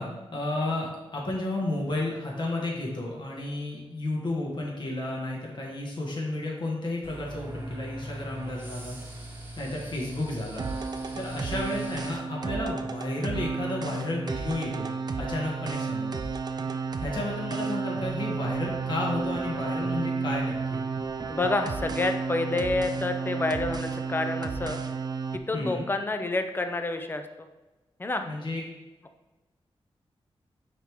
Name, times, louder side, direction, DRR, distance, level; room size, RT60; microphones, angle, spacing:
voice 1, 0.0-9.2 9.6-10.7 11.1-14.9 15.2-16.1 17.0-20.8 25.5-25.9 28.2-28.6, left 2 dB, 50° left, -2 dB, 1.4 m, -32 dB
sound 1, 7.0-12.2, right 1 dB, 20° right, 1.1 m, -41 dB
sound 2, 10.6-25.4, right 5 dB, 40° right, 0.4 m, -32 dB
voice 2, 21.3-24.8 25.3-27.2 28.0-28.3, left 2 dB, 20° left, 7 dB, 0.5 m, -28 dB
9.6 x 3.6 x 3.0 m, 1.1 s
wide cardioid pair, 155°, 10 cm